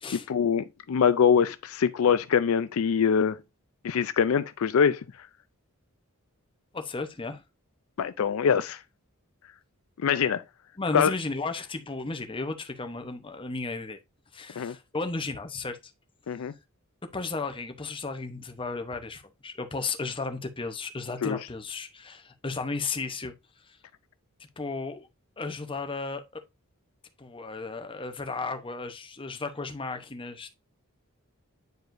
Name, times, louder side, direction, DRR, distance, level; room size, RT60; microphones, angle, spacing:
voice 1, 0.1-3.4 3.8-5.3 8.0-8.8 10.0-10.4 10.9-11.1 14.6-14.7 16.3-16.5 21.2-21.4, left 7 dB, 70° left, 0.4 m, -24 dB
voice 2, 6.7-7.4 10.8-14.0 14.3-15.8 17.0-23.3 23.7-23.8 24.6-25.1 25.4-26.4 27.2-30.5, left 3 dB, 25° left, 0.8 m, -34 dB
9.3 x 4.9 x 2.6 m
head